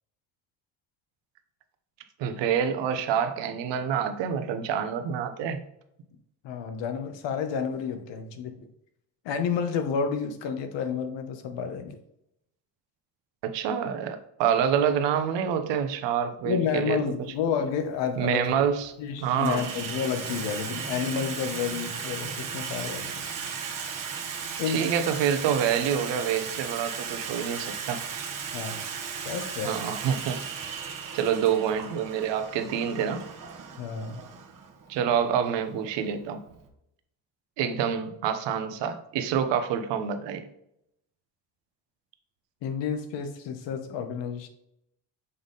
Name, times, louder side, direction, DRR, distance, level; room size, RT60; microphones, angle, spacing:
voice 1, 2.2-5.6 13.4-17.0 18.2-18.9 19.2-19.7 24.7-28.0 29.6-30.4 31.1-33.2 34.9-36.4 37.6-40.5, right 8 dB, 85° right, 8 dB, 0.9 m, -27 dB
voice 2, 6.4-8.7 9.2-12.0 16.4-18.6 19.0-23.2 24.6-24.9 28.5-28.9 29.2-29.8 33.8-34.2 42.6-44.5, left 7 dB, 80° left, 8 dB, 1.0 m, -30 dB
Water tap faucet / Sink (filling or washing), 17.3-17.4 18.4-18.8 19.1-36.7, right 6 dB, 50° right, 1.1 m, -36 dB
6.9 x 3.6 x 3.9 m, 0.78 s
cardioid pair, 120°, 42 cm